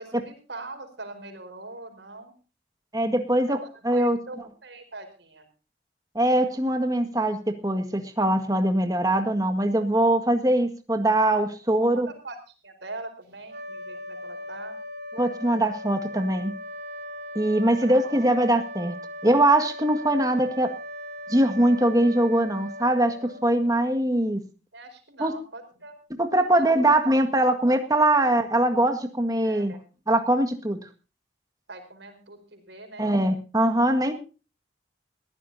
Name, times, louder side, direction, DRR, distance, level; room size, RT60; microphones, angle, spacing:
voice 1, 0.0-2.3 3.5-5.5 11.9-12.4 12.6-14.8 17.6-18.1 24.7-26.0 26.3-26.9 27.3-27.5 27.9-28.0 29.4-29.8 31.7-33.1 34.0-34.1, right 2 dB, 80° right, 6 dB, 4.8 m, -42 dB
voice 2, 2.9-4.2 6.2-12.1 15.2-16.5 17.4-19.0 19.2-20.7 21.3-24.4 25.2-25.3 26.2-29.7 30.1-30.8 33.0-34.1, right 1 dB, 20° right, 6 dB, 1.8 m, -22 dB
sound 1, 13.4-24.0, equal, 60° right, 4.1 m, -39 dB
21.0 x 15.0 x 2.7 m, 0.34 s
head